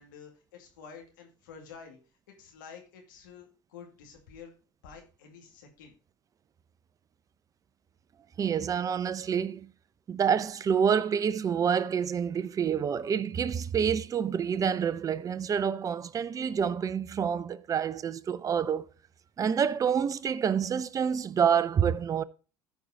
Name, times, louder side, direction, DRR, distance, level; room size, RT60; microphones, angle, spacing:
voice 1, 0.0-2.0 2.4-4.5 4.8-5.9, left 6 dB, 85° left, 2.3 m, -49 dB
voice 2, 8.4-9.7 10.1-18.8 19.4-22.2, right 7 dB, 35° right, 0.7 m, -27 dB
14.0 x 4.7 x 3.8 m
hypercardioid pair, 75°, 10 cm